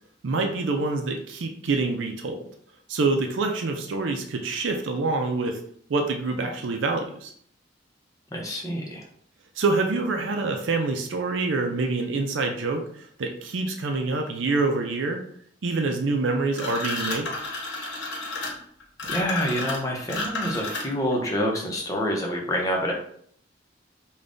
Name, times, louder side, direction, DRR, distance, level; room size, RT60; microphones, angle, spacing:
voice 1, 0.2-2.4 2.9-5.6 5.9-7.3 9.6-15.2 15.6-17.3, right 3 dB, 85° right, 3 dB, 0.5 m, -26 dB
voice 2, 8.3-9.0 19.1-22.9, equal, 20° left, -1 dB, 0.7 m, -27 dB
sound 1, 16.5-21.1, left 2 dB, 70° left, 1.0 m, -32 dB
5.1 x 2.3 x 2.5 m, 0.64 s
head